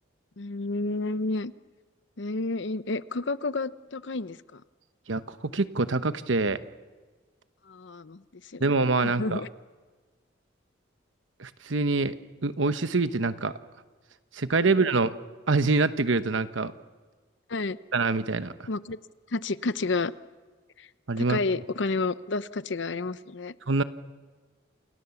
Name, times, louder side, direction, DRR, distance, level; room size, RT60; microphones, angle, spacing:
voice 1, 0.4-1.5 2.2-4.6 7.7-8.2 8.5-8.6 9.0-9.5 17.5-17.8 18.7-19.0 19.3-20.1 20.8-20.9 21.2-23.5, left 3 dB, 70° left, 15 dB, 0.8 m, -30 dB
voice 2, 5.1-6.6 8.6-9.4 11.4-12.1 12.4-13.5 14.3-15.1 15.5-16.7 17.9-18.7 21.1-21.4 23.7-23.8, right 3 dB, 80° right, 12 dB, 1.1 m, -25 dB
29.0 x 28.0 x 7.1 m, 1.4 s
head